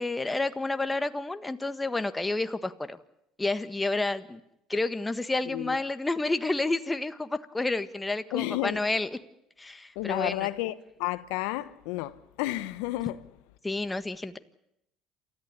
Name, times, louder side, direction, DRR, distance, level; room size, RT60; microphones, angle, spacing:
voice 1, 0.0-3.0 3.4-4.4 4.7-9.1 9.6-10.5 13.6-14.4, left 2 dB, 15° left, 1.6 m, -30 dB
voice 2, 5.4-5.8 8.3-8.8 9.9-13.3, left 17 dB, 75° left, 1.0 m, -31 dB
28.5 x 14.0 x 9.9 m
hypercardioid pair, 75°, 0 cm